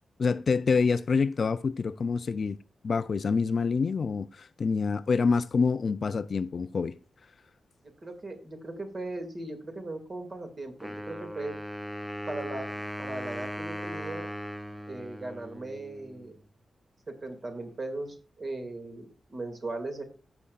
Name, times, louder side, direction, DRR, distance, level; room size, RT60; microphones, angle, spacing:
voice 1, 0.2-2.6 2.8-6.9, left 5 dB, 50° left, 0.4 m, -26 dB
voice 2, 7.8-11.5 12.3-12.7 13.0-14.3 14.9-16.4 17.1-20.0, right 2 dB, 35° right, 2.2 m, -38 dB
Wind instrument woodwind instrument, 10.8-16.4, equal, 5° right, 0.6 m, -38 dB
15.5 x 6.9 x 2.4 m
wide cardioid pair, 150°, 0 cm